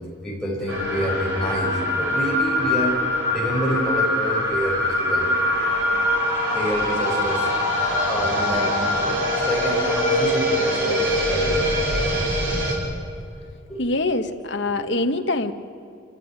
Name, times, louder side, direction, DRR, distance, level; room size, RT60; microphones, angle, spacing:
voice 1, 0.2-3.0 3.3-5.3 6.3-7.5 7.9-11.8 13.7-13.8 14.7-14.9, equal, 5° left, -4 dB, 5.3 m, -28 dB
sound 1, 0.7-12.8, left 1 dB, 70° right, 6.2 m, -23 dB
voice 2, 13.8-15.5, left 2 dB, 60° left, 7 dB, 1.3 m, -24 dB
27.0 x 14.0 x 9.6 m, 2.6 s
head